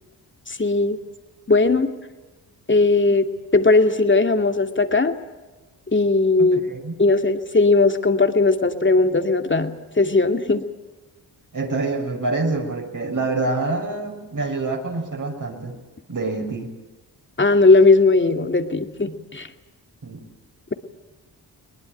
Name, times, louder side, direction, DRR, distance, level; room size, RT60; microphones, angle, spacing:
voice 1, 0.5-1.0 1.5-1.9 2.7-3.3 3.5-5.1 5.9-6.6 7.0-10.6 17.4-19.5, left 3 dB, 30° left, 6 dB, 2.5 m, -18 dB
voice 2, 6.4-6.9 11.5-15.8 16.1-16.7 20.0-20.2, right 3 dB, 50° right, 1 dB, 6.0 m, -26 dB
22.0 x 19.5 x 9.2 m, 1.2 s
cardioid pair, 55°, 40 cm